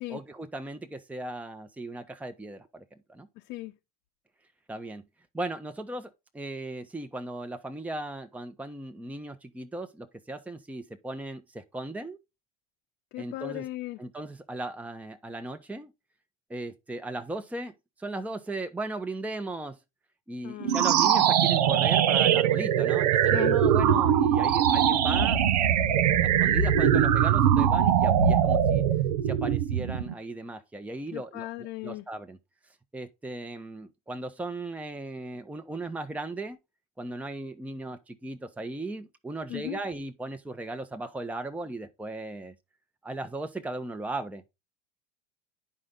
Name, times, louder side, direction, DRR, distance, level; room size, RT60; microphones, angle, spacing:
voice 1, 0.1-2.8 3.1-3.3 4.7-5.0 5.3-12.2 13.2-13.7 14.0-15.9 16.5-17.7 18.0-19.8 20.3-25.4 26.2-28.8 29.2-32.4 32.9-36.6 37.0-42.5 43.0-44.5, right 2 dB, 5° right, 0.9 m, -37 dB
voice 2, 13.1-14.0 20.4-20.9 23.3-23.6 31.1-32.0 39.5-39.8, left 17 dB, 55° left, 0.8 m, -36 dB
sound 1, 20.6-30.1, right 9 dB, 80° right, 0.9 m, -22 dB
9.8 x 5.4 x 3.7 m
hypercardioid pair, 90°, 20 cm